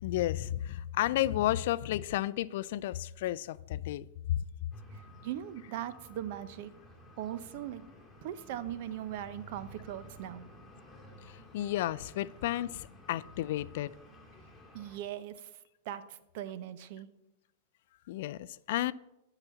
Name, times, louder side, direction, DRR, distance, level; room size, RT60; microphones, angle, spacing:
voice 1, 0.0-4.4 11.2-13.9 18.1-18.9, left 14 dB, 65° left, 0.3 m, -32 dB
sound 1, 4.7-15.0, left 1 dB, 10° left, 2.2 m, -53 dB
voice 2, 4.9-6.7 7.2-7.8 8.2-10.5 14.7-15.5 15.8-17.1, right 11 dB, 60° right, 0.7 m, -40 dB
9.9 x 4.0 x 7.1 m
hypercardioid pair, 120°, 0 cm